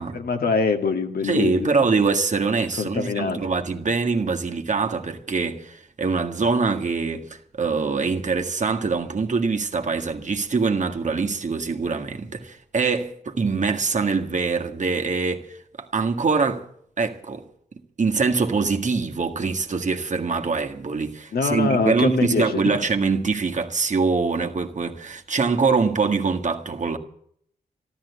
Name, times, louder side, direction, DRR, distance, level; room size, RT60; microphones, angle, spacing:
voice 1, 0.1-1.7 2.8-3.4 21.3-22.8, left 4 dB, 70° left, 2.0 m, -24 dB
voice 2, 1.2-16.7 17.0-17.5 18.0-27.0, right 4 dB, 50° right, 1.8 m, -24 dB
13.5 x 12.5 x 8.2 m
cardioid pair, 60°, 16 cm